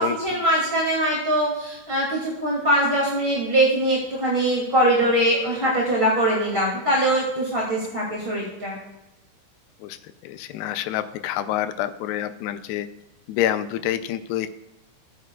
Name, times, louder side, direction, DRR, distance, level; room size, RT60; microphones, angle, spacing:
voice 1, 0.0-8.8, right 1 dB, 20° right, -4 dB, 1.7 m, -22 dB
voice 2, 10.2-12.9 13.3-14.5, left 12 dB, 85° left, 10 dB, 2.7 m, -27 dB
17.0 x 9.5 x 2.4 m, 0.94 s
omnidirectional pair, 4.7 m